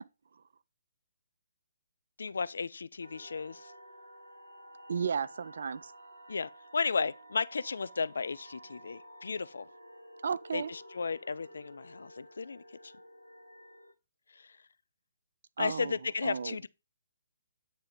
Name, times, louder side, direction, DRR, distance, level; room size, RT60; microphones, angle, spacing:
voice 1, 2.2-3.7 6.3-9.7 10.5-12.9 14.4-14.5 15.6-16.7, left 5 dB, 60° left, 0.4 m, -34 dB
sound 1, 3.0-13.9, equal, 90° left, 1.2 m, -53 dB
voice 2, 4.9-5.9 10.2-10.7 15.6-16.0 16.2-16.7, right 6 dB, 55° right, 0.4 m, -34 dB
8.8 x 3.4 x 5.1 m
figure-of-eight pair, 135°, 0 cm